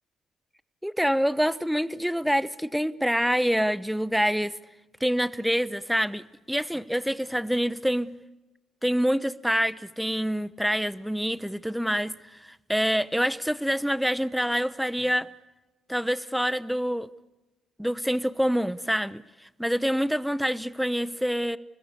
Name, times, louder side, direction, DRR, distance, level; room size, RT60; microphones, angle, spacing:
voice 1, 0.8-4.6 5.0-8.1 8.8-15.3 15.9-17.1 17.8-19.2 19.6-21.6, equal, ahead, 0.8 m, -26 dB
29.5 x 20.0 x 8.4 m
cardioid pair, 90°, 0 cm